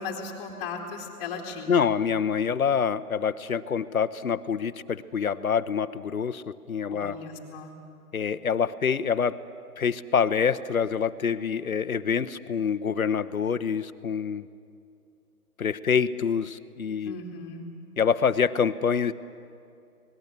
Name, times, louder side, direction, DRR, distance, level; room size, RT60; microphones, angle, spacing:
voice 1, 0.0-1.9 6.9-7.7 17.0-17.6, left 4 dB, 15° left, 0 dB, 2.5 m, -37 dB
voice 2, 1.7-7.2 8.1-9.4 9.8-14.5 15.6-17.1 18.0-19.1, left 6 dB, 65° left, 12 dB, 1.0 m, -26 dB
26.0 x 19.5 x 8.2 m, 2.5 s
figure-of-eight pair, 150°, 46 cm